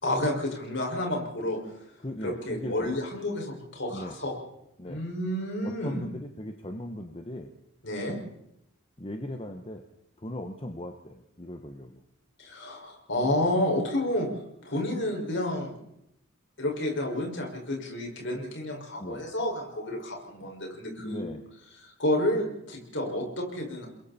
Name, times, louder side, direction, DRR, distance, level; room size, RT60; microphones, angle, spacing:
voice 1, 0.0-1.6 2.2-4.3 4.8-6.0 7.8-8.2 12.4-14.3 14.6-15.7 16.6-21.3 21.8-23.9, left 1 dB, 55° left, 1 dB, 6.0 m, -30 dB
voice 2, 2.0-3.0 3.9-4.2 4.8-5.0 5.6-7.5 9.0-9.8 10.2-12.0 19.0-19.3 21.0-21.4, left 1 dB, 25° left, 4 dB, 1.2 m, -38 dB
30.0 x 22.0 x 4.4 m, 0.81 s
head